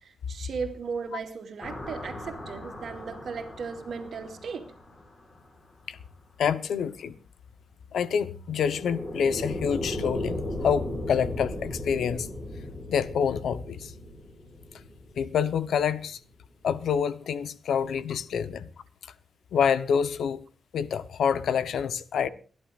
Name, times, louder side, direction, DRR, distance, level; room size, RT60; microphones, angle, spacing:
voice 1, 0.0-4.7, right 5 dB, 65° right, 2.4 m, -36 dB
sound 1, 1.6-5.5 8.5-15.7, left 1 dB, 25° left, 6.1 m, -37 dB
voice 2, 6.4-7.2 7.9-12.3 12.9-13.9 15.2-16.2 16.6-18.7 19.5-20.4 20.7-22.3, left 7 dB, 90° left, 1.0 m, -27 dB
29.5 x 11.0 x 2.5 m
wide cardioid pair, 150°, 0 cm